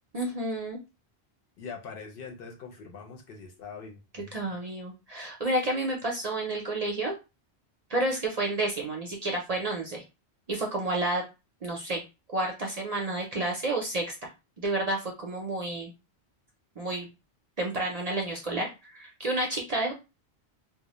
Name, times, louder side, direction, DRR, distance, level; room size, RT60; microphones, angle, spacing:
voice 1, 0.1-0.8 4.1-7.1 7.9-10.0 10.5-11.2 11.6-12.0 12.3-14.3 14.6-15.9 16.8-17.1 17.6-19.9, right 2 dB, 50° right, 0 dB, 0.5 m, -30 dB
voice 2, 1.6-4.4, left 5 dB, 65° left, 2 dB, 0.7 m, -43 dB
2.2 x 2.0 x 2.9 m, 0.27 s
omnidirectional pair, 1.1 m